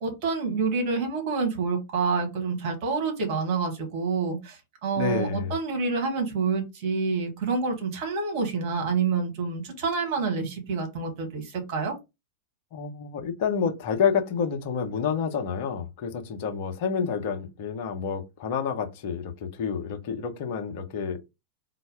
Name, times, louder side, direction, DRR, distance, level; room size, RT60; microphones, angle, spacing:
voice 1, 0.0-11.9, right 4 dB, 45° right, 1.5 m, -28 dB
voice 2, 5.0-5.5 12.7-21.2, left 6 dB, 50° left, 0.7 m, -29 dB
4.2 x 2.0 x 3.4 m
figure-of-eight pair, 90°, 0 cm